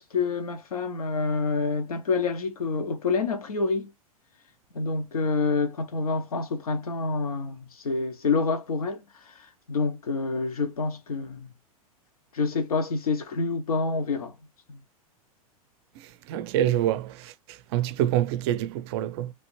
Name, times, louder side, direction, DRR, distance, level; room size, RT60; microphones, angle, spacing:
voice 1, 0.0-3.9 4.7-11.5 12.3-14.4 14.7-14.8, left 4 dB, 80° left, 0.8 m, -28 dB
voice 2, 16.3-17.1 17.7-19.3, right 12 dB, 45° right, 0.5 m, -25 dB
3.2 x 2.5 x 3.0 m
figure-of-eight pair, 100°, 19 cm